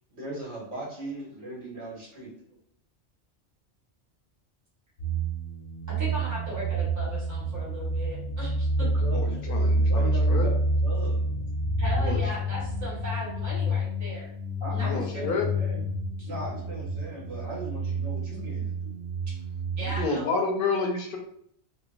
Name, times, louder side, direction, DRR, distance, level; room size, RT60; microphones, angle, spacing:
voice 1, 0.1-2.3 9.0-11.2 14.6-15.8 16.3-18.9, right 2 dB, 70° right, -6 dB, 1.5 m, -38 dB
sound 1, 5.0-20.1, right 1 dB, 85° left, 1.0 m, -28 dB
voice 2, 6.0-8.5 9.0-9.1 10.3-10.4 11.8-14.3 14.7-15.2 16.2-16.3 19.8-20.3, equal, 15° right, -8 dB, 1.0 m, -37 dB
voice 3, 9.1-10.5 12.0-12.2 14.8-15.5 19.8-21.2, left 4 dB, 60° left, 1 dB, 0.7 m, -30 dB
3.0 x 2.1 x 2.4 m, 0.66 s
omnidirectional pair, 1.1 m